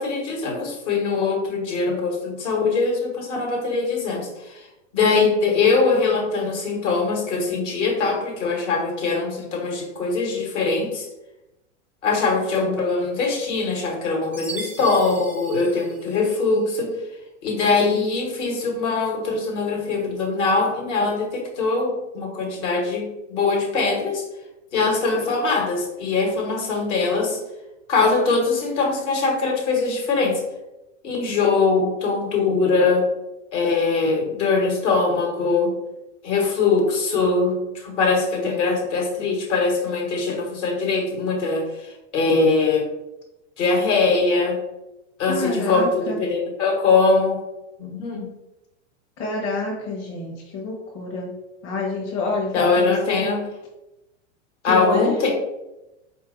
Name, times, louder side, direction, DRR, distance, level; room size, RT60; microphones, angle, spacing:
voice 1, 0.0-4.7 4.9-11.1 12.0-17.0 17.4-24.2 24.7-27.4 27.9-30.4 31.0-33.1 33.5-35.8 36.2-42.9 43.6-44.6 45.2-47.4 47.8-48.3 52.5-53.4 54.6-55.3, left 4 dB, 65° left, 0 dB, 1.5 m, -22 dB
Chime, 14.3-16.6, right 3 dB, 5° right, 0.4 m, -38 dB
voice 2, 45.3-46.2 49.2-51.3 51.6-53.3 54.6-55.1, left 3 dB, 45° left, -2 dB, 1.0 m, -28 dB
4.3 x 2.7 x 3.7 m, 0.95 s
hypercardioid pair, 105°, 37 cm